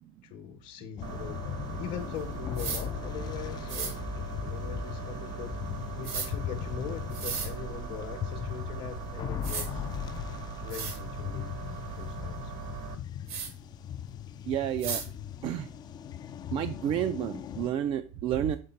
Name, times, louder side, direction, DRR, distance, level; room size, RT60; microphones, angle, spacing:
voice 1, 0.2-9.9 10.6-12.5, left 8 dB, 60° left, 5 dB, 1.0 m, -42 dB
sound 1, 1.0-17.7, left 10 dB, 30° left, 0.3 m, -38 dB
sound 2, 1.0-13.0, right 7 dB, 65° right, 1.1 m, -40 dB
sound 3, 2.5-2.8 3.7-3.9 6.0-6.3 7.1-7.5 9.0-9.1 9.4-9.7 10.3-10.4 10.7-11.0 13.3-13.5 14.8-15.1, right 6 dB, 85° right, 2.1 m, -34 dB
voice 2, 14.5-15.0 15.4-15.7 16.5-18.6, right 10 dB, 45° right, 10 dB, 0.3 m, -30 dB
6.6 x 3.7 x 5.6 m, 0.37 s
cardioid pair, 140°, 14 cm